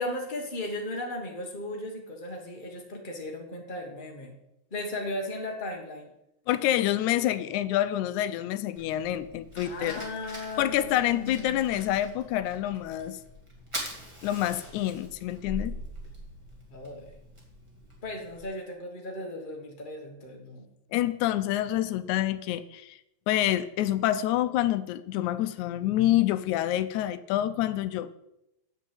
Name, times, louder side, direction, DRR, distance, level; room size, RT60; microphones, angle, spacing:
voice 1, 0.0-4.3 4.7-6.1 9.6-11.9 16.7-17.2 18.0-20.7, left 1 dB, 40° left, 1 dB, 0.7 m, -36 dB
voice 2, 6.5-10.0 10.6-13.2 14.2-15.8 20.9-23.0 23.3-28.2, left 13 dB, 85° left, 13 dB, 2.0 m, -27 dB
Fire, 8.7-18.4, equal, 10° right, 1.6 m, -43 dB
8.3 x 5.5 x 7.6 m, 0.85 s
omnidirectional pair, 3.5 m